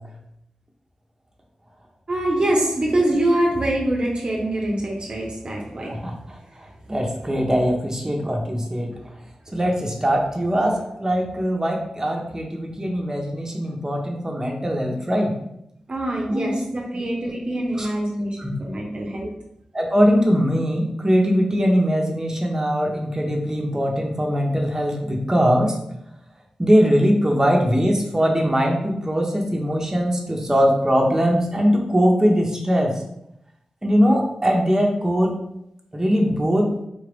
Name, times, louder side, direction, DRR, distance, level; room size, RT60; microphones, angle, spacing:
voice 1, 2.1-6.1 15.9-19.3, right 1 dB, 50° right, -2 dB, 0.7 m, -24 dB
voice 2, 6.9-8.9 9.5-15.4 16.3-16.6 17.8-17.9 18.4-18.5 19.7-25.8 26.6-32.9 33.8-35.4 35.9-36.7, equal, 25° right, 0 dB, 0.9 m, -21 dB
3.8 x 2.4 x 3.4 m, 0.78 s
cardioid pair, 40°, 2 cm